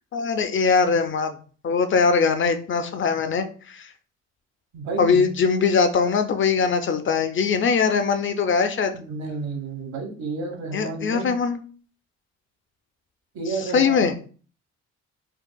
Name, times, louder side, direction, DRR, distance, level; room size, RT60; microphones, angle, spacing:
voice 1, 0.1-1.4 1.6-3.9 5.0-8.9 10.7-11.6 13.5-14.1, left 5 dB, 40° left, 8 dB, 0.4 m, -21 dB
voice 2, 4.7-5.3 8.9-11.3 13.3-14.0, right 3 dB, 65° right, 1 dB, 1.2 m, -31 dB
4.5 x 2.3 x 2.2 m, 0.40 s
cardioid pair, 90°, 30 cm